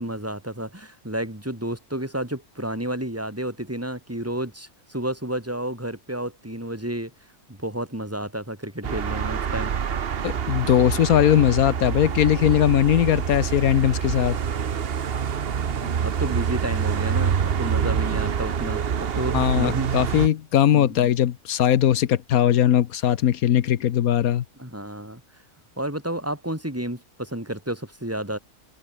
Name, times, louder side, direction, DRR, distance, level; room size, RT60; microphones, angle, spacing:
voice 1, 0.0-7.1 7.6-9.7 15.6-19.9 20.7-21.1 24.6-25.2 25.8-28.4, right 1 dB, 10° right, 4.8 m, -31 dB
sound 1, 8.8-20.3, right 7 dB, 45° right, 1.0 m, -26 dB
voice 2, 10.2-14.4 19.3-24.4, left 10 dB, 70° left, 1.3 m, -20 dB
omnidirectional pair, 1.6 m